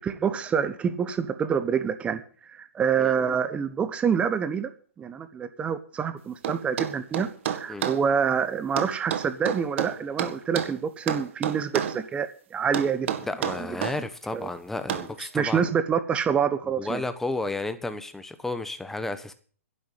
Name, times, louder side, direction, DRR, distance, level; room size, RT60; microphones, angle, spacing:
voice 1, 0.0-2.2 2.5-4.7 5.0-13.1 13.6-13.8 14.3-14.5 15.2-17.0, right 7 dB, 15° right, 11 dB, 1.3 m, -27 dB
sound 1, 6.4-8.0 8.8-10.7 11.1-12.0 12.7-14.0 14.9-15.1, right 9 dB, 55° right, 1.9 m, -29 dB
voice 2, 13.2-15.7 16.6-19.3, left 2 dB, 5° left, 10 dB, 1.2 m, -32 dB
11.0 x 9.4 x 7.5 m, 0.43 s
hypercardioid pair, 135°, 8 cm